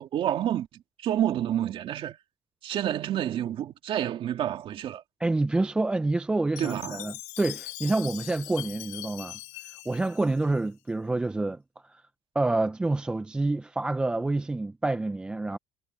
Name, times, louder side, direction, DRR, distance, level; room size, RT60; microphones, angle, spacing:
voice 1, 0.0-2.2 2.6-5.0 6.6-7.1, right 11 dB, 45° right, 2.3 m, -29 dB
voice 2, 5.2-9.4 9.7-12.0 12.4-15.6, right 2 dB, 5° right, 0.3 m, -28 dB
Chime, 6.6-10.9, left 19 dB, 80° left, 1.1 m, -41 dB
cardioid pair, 150°, 13 cm